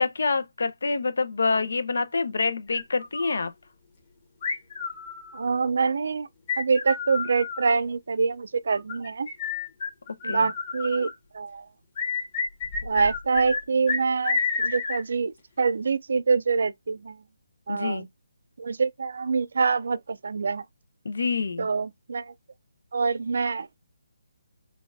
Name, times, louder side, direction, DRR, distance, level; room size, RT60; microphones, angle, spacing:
voice 1, 0.0-3.5 10.2-10.5 17.7-18.0 21.0-21.7, left 4 dB, 70° left, 0.7 m, -26 dB
sound 1, 2.7-3.5 4.4-5.6 6.5-7.7 8.7-11.1 12.0-13.6 13.9-15.0, left 4 dB, 35° left, 1.4 m, -30 dB
voice 2, 5.3-6.3 6.6-9.3 10.2-11.7 12.8-17.2 17.7-18.1 18.6-20.6 21.6-22.3 22.9-23.8, right 5 dB, 65° right, 0.4 m, -25 dB
5.1 x 2.4 x 2.5 m
hypercardioid pair, 160°, 0 cm